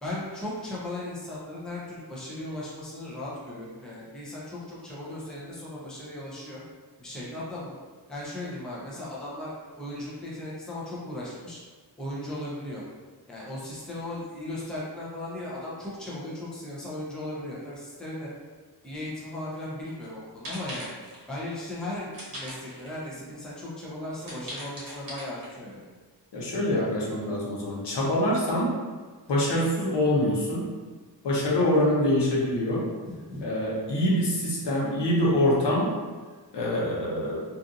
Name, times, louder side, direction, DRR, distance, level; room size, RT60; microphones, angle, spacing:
voice 1, 0.0-6.6 7.0-7.7 8.1-11.6 12.0-12.8 13.3-18.3 18.8-20.9 21.3-25.8 33.0-33.5, left 1 dB, ahead, -7 dB, 0.5 m, -37 dB
sound 1, 19.9-20.1 20.4-21.3 22.1-23.1 23.5-23.6 24.2-25.8, equal, 50° right, 1.0 m, -40 dB
voice 2, 26.3-28.7 29.3-30.7 31.2-32.9 33.4-36.0 36.5-37.4, left 1 dB, 70° left, -5 dB, 0.8 m, -25 dB
2.7 x 2.4 x 2.5 m, 1.4 s
wide cardioid pair, 150°, 43 cm